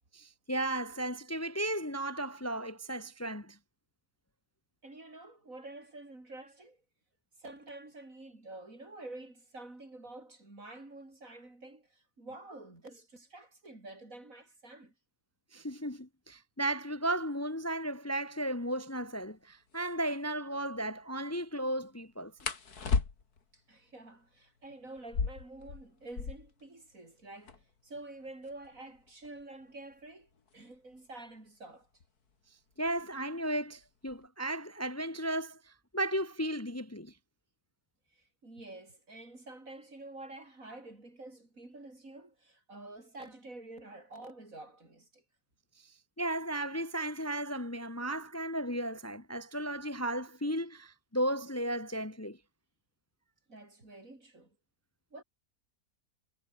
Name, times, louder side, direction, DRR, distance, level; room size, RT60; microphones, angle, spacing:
voice 1, 0.1-3.6 15.5-22.3 32.8-37.1 46.2-52.4, right 1 dB, 10° left, 1.3 m, -35 dB
voice 2, 4.8-6.8 7.4-14.9 23.5-31.9 38.1-45.2 53.5-54.6 55.1-55.2, right 2 dB, 60° right, 6.2 m, -49 dB
sound 1, 19.2-19.3 19.7-19.9 22.4-23.5 25.0-26.6 26.9-27.0 27.2-27.8 28.4-31.0 32.0-32.3 32.7-33.2 33.5-34.2, left 5 dB, 85° left, 2.9 m, -36 dB
omnidirectional pair, 1.6 m